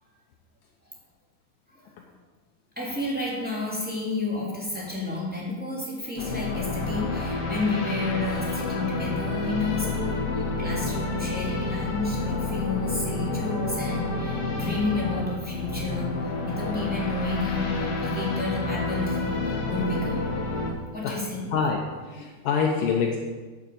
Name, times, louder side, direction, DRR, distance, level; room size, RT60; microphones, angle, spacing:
voice 1, 2.8-20.4 20.8-21.5, left 2 dB, 5° right, -6 dB, 1.8 m, -31 dB
sound 1, 6.2-20.7, left 3 dB, 60° left, 1.6 m, -29 dB
sound 2, 13.5-19.7, right 7 dB, 60° right, 4.7 m, -46 dB
voice 2, 21.5-23.2, left 5 dB, 80° left, 0 dB, 1.9 m, -26 dB
9.4 x 7.2 x 7.7 m, 1.3 s
omnidirectional pair, 5.1 m